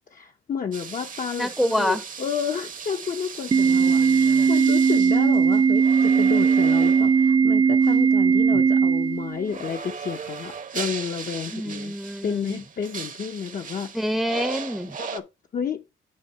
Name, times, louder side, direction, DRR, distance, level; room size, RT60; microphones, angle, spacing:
voice 1, 0.1-11.9 12.2-13.9 15.0-15.2 15.5-15.8, left 7 dB, 45° left, 0.8 m, -31 dB
sound 1, 0.7-7.3 7.8-8.0 9.5-15.2, right 6 dB, 40° right, 0.9 m, -37 dB
voice 2, 1.4-2.0 3.6-4.5 8.5-8.6 11.5-12.6 13.9-15.0, equal, ahead, 0.8 m, -27 dB
Organ, 3.5-9.5, right 6 dB, 25° right, 0.3 m, -19 dB
9.6 x 3.2 x 4.4 m
cardioid pair, 90°, 20 cm